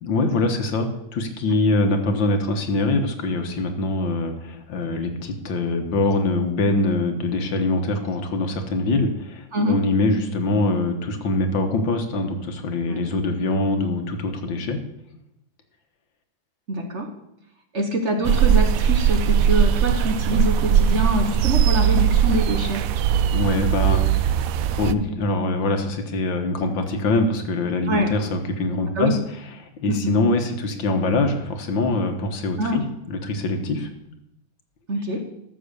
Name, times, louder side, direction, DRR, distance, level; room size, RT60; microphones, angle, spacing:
voice 1, 0.0-14.8 23.3-24.3 24.7-29.2 29.8-33.9, left 2 dB, 80° left, 6 dB, 2.1 m, -23 dB
voice 2, 16.7-17.1 17.7-22.9 27.9-28.1 29.0-29.2 29.9-30.2 32.6-32.9 34.9-35.2, equal, 40° right, 4 dB, 1.3 m, -24 dB
sound 1, 18.2-24.9, right 9 dB, 85° right, 0.7 m, -19 dB
13.0 x 7.0 x 6.8 m, 0.83 s
omnidirectional pair, 2.1 m